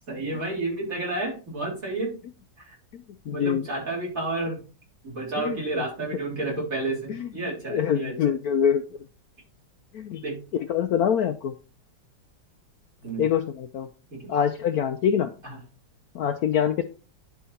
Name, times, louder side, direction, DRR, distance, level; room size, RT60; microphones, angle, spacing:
voice 1, 0.1-2.1 2.6-2.7 3.3-4.6 5.0-8.3 10.2-10.3 13.0-13.3 14.1-14.2 15.4-15.6, right 2 dB, 45° right, -3 dB, 4.0 m, -31 dB
voice 2, 3.3-3.7 5.4-5.8 7.1-7.3 7.7-8.8 9.9-10.2 10.7-11.5 13.2-13.9 14.3-15.3 16.1-16.8, left 8 dB, 70° left, 8 dB, 0.9 m, -24 dB
10.5 x 4.7 x 4.2 m, 0.35 s
omnidirectional pair, 2.0 m